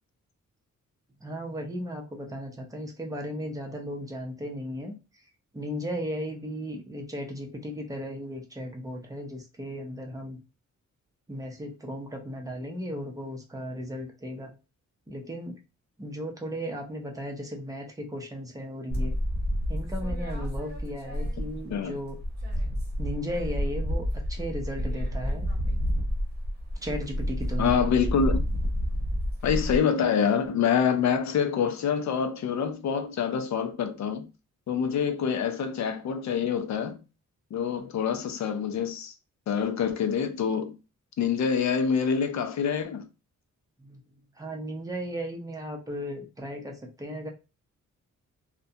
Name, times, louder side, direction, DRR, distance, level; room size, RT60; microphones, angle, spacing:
voice 1, 1.2-5.3 5.5-10.4 11.3-14.6 15.1-15.6 16.0-19.2 19.7-22.2 23.0-25.5 26.8-27.8 37.8-37.9 43.8-44.0 44.3-47.3, equal, 10° right, 0.5 m, -36 dB
sound 1, 18.9-21.8 22.1-29.8, equal, 35° right, 0.8 m, -29 dB
voice 2, 27.6-28.4 29.4-34.3 34.7-37.0 37.5-39.1 39.5-40.8 41.2-43.1, left 7 dB, 65° left, 0.5 m, -26 dB
2.4 x 2.1 x 2.7 m
wide cardioid pair, 160°, 30 cm